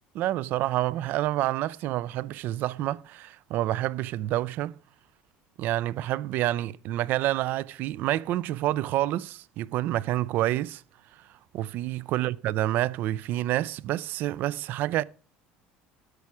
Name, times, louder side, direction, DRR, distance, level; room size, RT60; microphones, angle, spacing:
voice 1, 0.1-4.7 5.6-10.8 11.5-15.0, right 14 dB, 55° right, 0.4 m, -28 dB
13.0 x 6.0 x 4.8 m
cardioid pair, 135°, 4 cm